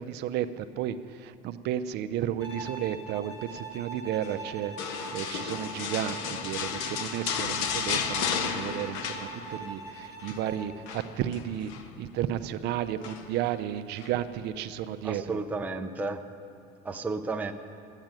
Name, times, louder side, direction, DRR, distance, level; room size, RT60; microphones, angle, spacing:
voice 1, 0.0-11.7 12.0-15.4, right 10 dB, 60° right, 10 dB, 0.6 m, -33 dB
Bowed string instrument, 2.4-10.8, right 3 dB, 65° left, 3.5 m, -42 dB
sound 1, 4.8-9.8 10.0-10.4 10.9-11.9 13.0-13.5 14.0-14.1, left 7 dB, 80° left, 0.9 m, -33 dB
voice 2, 15.0-16.2 16.8-17.5, right 3 dB, 10° right, 4 dB, 0.5 m, -32 dB
12.0 x 9.0 x 9.0 m, 2.4 s
cardioid pair, 150°, 20 cm